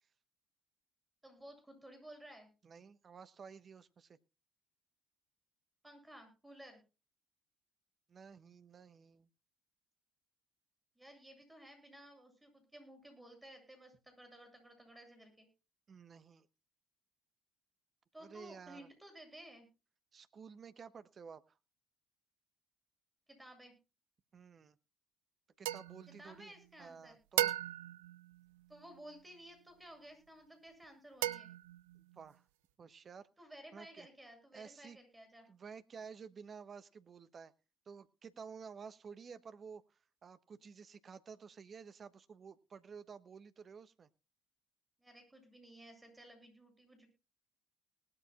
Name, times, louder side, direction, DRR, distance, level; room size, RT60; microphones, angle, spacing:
voice 1, 1.2-2.5 5.8-6.8 11.0-15.5 18.1-19.7 23.3-23.7 26.1-27.2 28.7-31.5 33.4-35.5 45.0-47.1, right 1 dB, 10° right, 6 dB, 7.9 m, -55 dB
voice 2, 2.6-4.2 8.1-9.3 15.9-16.5 18.2-18.9 20.1-21.6 24.3-24.8 25.6-26.5 26.8-27.5 31.9-32.4 32.8-33.3 33.7-34.1 34.5-35.0 35.5-37.5 37.9-44.1, right 6 dB, 40° right, 13 dB, 1.1 m, -52 dB
sound 1, 25.6-26.9 27.4-29.2 31.2-32.2, right 14 dB, 75° right, 0.6 m, -38 dB
19.5 x 13.0 x 2.4 m, 0.31 s
figure-of-eight pair, 55°, 0 cm